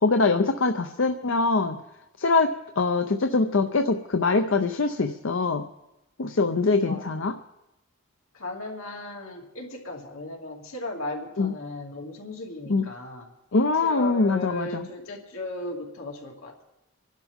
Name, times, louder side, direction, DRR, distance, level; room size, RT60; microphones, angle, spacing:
voice 1, 0.0-1.8 2.2-5.6 6.2-7.3 11.4-11.5 12.7-12.8 13.5-14.9, left 3 dB, 70° left, 6 dB, 0.7 m, -23 dB
voice 2, 8.3-13.3 13.8-16.6, left 2 dB, 85° left, 0 dB, 2.5 m, -36 dB
25.5 x 11.5 x 3.6 m, 0.91 s
head